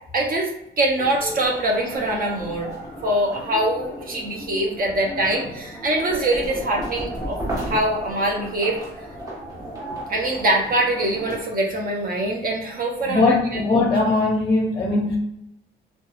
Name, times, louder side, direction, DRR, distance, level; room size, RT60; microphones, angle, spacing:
voice 1, 0.1-0.5 0.8-2.7 3.0-8.8 10.1-13.6, right 1 dB, 45° right, 0 dB, 0.6 m, -23 dB
sound 1, 1.0-11.4, right 1 dB, 20° right, 1.0 m, -34 dB
voice 2, 13.0-15.2, left 3 dB, 25° left, -2 dB, 0.6 m, -20 dB
2.6 x 2.3 x 2.4 m, 0.82 s
cardioid pair, 90°, 20 cm